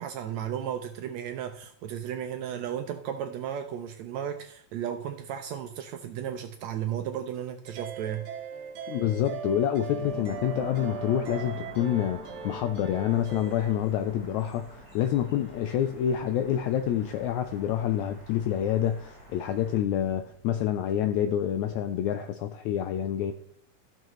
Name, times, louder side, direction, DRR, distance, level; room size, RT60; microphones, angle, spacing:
voice 1, 0.0-8.2, right 9 dB, 80° right, 1.6 m, -34 dB
sound 1, 7.6-13.7, right 6 dB, 55° right, 1.6 m, -39 dB
voice 2, 8.9-23.3, left 10 dB, 80° left, 1.7 m, -27 dB
sound 2, 9.9-20.5, right 2 dB, 25° right, 1.6 m, -48 dB
sound 3, 13.1-19.8, equal, 25° left, 5.0 m, -53 dB
14.5 x 6.5 x 3.1 m
omnidirectional pair, 3.7 m